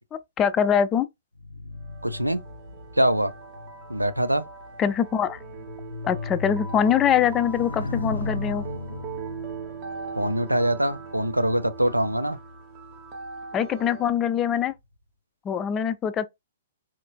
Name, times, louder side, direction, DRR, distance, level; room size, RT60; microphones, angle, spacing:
voice 1, 0.1-1.1 4.8-5.4 6.1-8.6 13.5-14.7 15.4-16.3, left 8 dB, 20° left, 0.3 m, -23 dB
sound 1, 1.4-13.0 13.7-14.0, left 2 dB, 80° left, 0.5 m, -37 dB
sound 2, 1.8-14.2, right 6 dB, 30° right, 0.8 m, -41 dB
voice 2, 2.0-2.4 3.0-3.3 3.9-4.5 10.2-12.4, right 1 dB, 85° right, 0.4 m, -23 dB
4.3 x 2.3 x 2.2 m
figure-of-eight pair, 115°, 0 cm